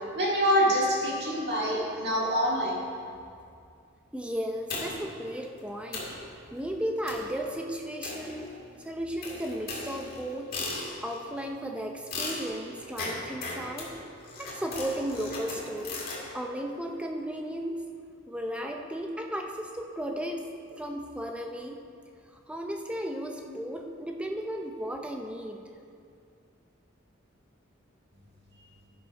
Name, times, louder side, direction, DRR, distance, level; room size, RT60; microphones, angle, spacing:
voice 1, 0.1-2.8, equal, 50° right, -5 dB, 2.2 m, -25 dB
voice 2, 4.1-6.0 6.5-10.5 11.0-14.0 14.4-16.0 16.3-17.8 18.3-21.8 22.5-25.6, equal, 5° right, 3 dB, 0.5 m, -35 dB
sound 1, 4.7-5.2 5.6-5.7 5.9-6.2 7.1-7.4 8.0-8.7 9.2-11.2 12.1-16.2, left 2 dB, 45° left, 2.1 m, -37 dB
11.5 x 6.0 x 5.3 m, 2.4 s
head